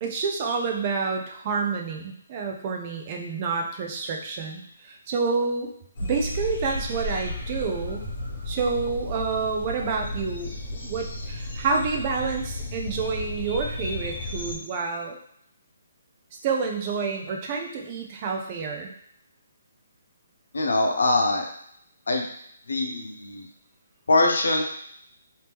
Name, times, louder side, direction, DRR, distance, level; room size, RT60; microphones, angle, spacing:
voice 1, 0.0-5.7 6.0-8.1 8.5-15.2 16.4-18.9, right 4 dB, 25° right, 2 dB, 0.4 m, -28 dB
sound 1, 6.0-14.6, left 1 dB, 40° left, 1.2 m, -33 dB
voice 2, 20.5-21.5 22.1-22.2 22.7-23.5 24.1-24.6, left 2 dB, 85° left, 2 dB, 0.8 m, -22 dB
3.0 x 2.9 x 3.4 m, 0.68 s
hypercardioid pair, 175°, 0 cm